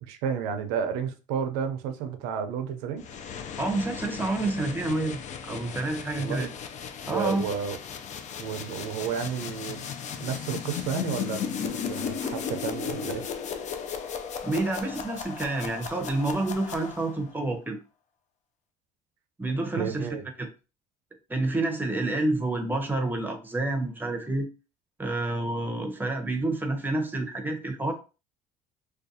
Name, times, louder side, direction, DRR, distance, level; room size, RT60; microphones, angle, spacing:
voice 1, 0.0-3.0 6.2-6.5 7.1-7.8 8.4-9.9 10.2-13.2 19.8-20.3, right 7 dB, 90° right, 0.5 m, -32 dB
sound 1, 3.0-17.3, left 7 dB, 50° left, 0.4 m, -36 dB
voice 2, 3.6-6.5 7.1-7.4 14.4-17.8 19.4-20.1 20.4-20.5 21.3-24.5 25.0-27.9, right 2 dB, 10° right, 0.7 m, -28 dB
2.4 x 2.3 x 2.6 m
supercardioid pair, 85°, 16 cm